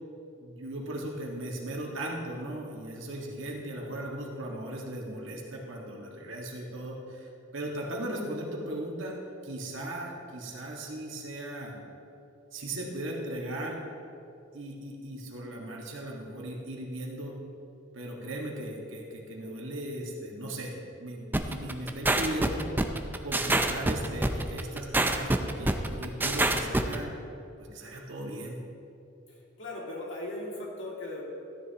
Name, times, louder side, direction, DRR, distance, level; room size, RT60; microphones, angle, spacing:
voice 1, 0.4-9.2 9.4-11.8 12.5-13.8 14.5-17.4 17.9-22.7 23.2-27.1 27.6-28.6, right 1 dB, 90° right, -1 dB, 1.7 m, -37 dB
sound 1, 21.3-27.0, right 2 dB, 10° right, 0.4 m, -26 dB
voice 2, 29.6-31.2, left 1 dB, 70° left, -3 dB, 2.2 m, -37 dB
13.5 x 9.8 x 2.9 m, 2.7 s
head